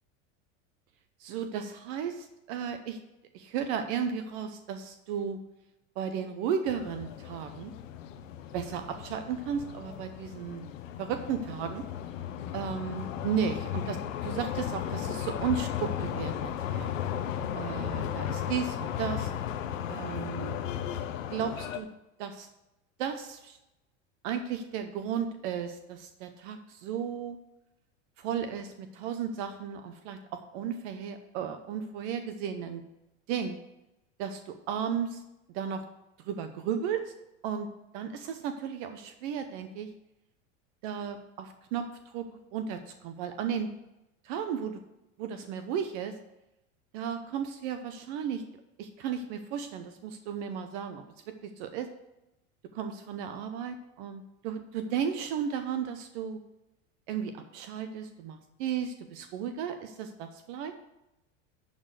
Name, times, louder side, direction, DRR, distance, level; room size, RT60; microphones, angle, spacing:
voice 1, 1.2-3.0 3.3-5.4 6.0-7.7 8.5-10.7 11.0-11.8 12.5-16.9 17.6-19.3 19.9-20.6 21.3-21.9 22.2-22.5 23.0-23.6 24.2-27.4 28.2-32.8 33.3-33.6 34.2-35.2 35.5-35.8 36.3-37.1 37.4-37.7 37.9-39.9 40.8-41.9 42.1-43.7 44.2-44.8 45.2-46.1 46.9-48.4 48.8-51.9 52.7-56.4 57.1-60.7, right 7 dB, 65° right, 8 dB, 0.9 m, -34 dB
sound 1, 6.7-21.8, left 9 dB, 85° left, 0.9 m, -35 dB
11.0 x 4.1 x 6.4 m, 0.92 s
supercardioid pair, 110°, 38 cm